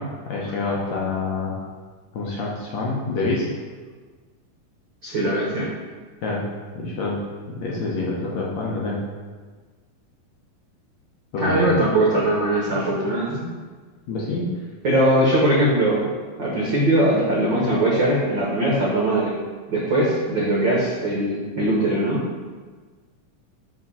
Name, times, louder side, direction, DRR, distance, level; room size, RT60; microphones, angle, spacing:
voice 1, 0.0-1.5 2.1-3.5 6.2-6.5 6.8-7.2 7.5-9.0 11.3-11.8 14.1-14.5, left 3 dB, 70° left, -4 dB, 1.9 m, -27 dB
voice 2, 5.0-5.7 11.4-13.5 14.8-16.0 16.4-19.3 19.7-22.2, right 1 dB, 70° right, -5 dB, 1.1 m, -20 dB
7.3 x 3.7 x 6.0 m, 1.4 s
omnidirectional pair, 3.9 m